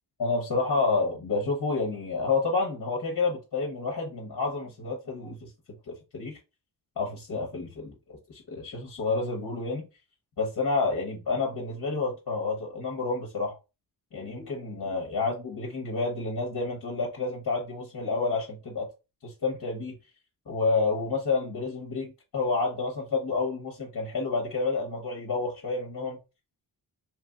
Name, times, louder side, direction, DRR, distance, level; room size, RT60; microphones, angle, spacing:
voice 1, 0.2-5.5 5.9-6.4 7.0-9.9 10.4-13.6 14.1-18.9 19.2-19.9 20.5-26.2, left 3 dB, 50° left, 0.9 m, -29 dB
3.0 x 2.6 x 2.3 m
cardioid pair, 85°, 43 cm